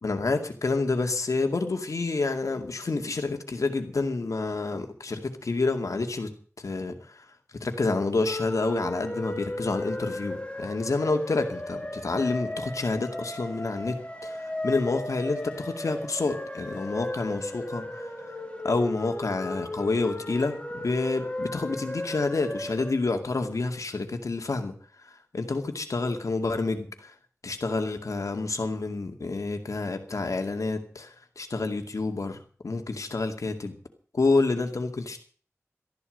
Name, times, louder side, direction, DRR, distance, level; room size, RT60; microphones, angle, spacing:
voice 1, 0.0-6.3 6.6-7.2 7.6-18.0 18.6-24.7 25.3-27.1 27.4-32.4 32.6-33.7 34.1-35.2, left 3 dB, 85° left, 5 dB, 2.3 m, -28 dB
sound 1, 8.3-22.9, left 1 dB, 20° left, 3.3 m, -36 dB
14.0 x 11.5 x 6.5 m, 0.43 s
wide cardioid pair, 55°, 5 cm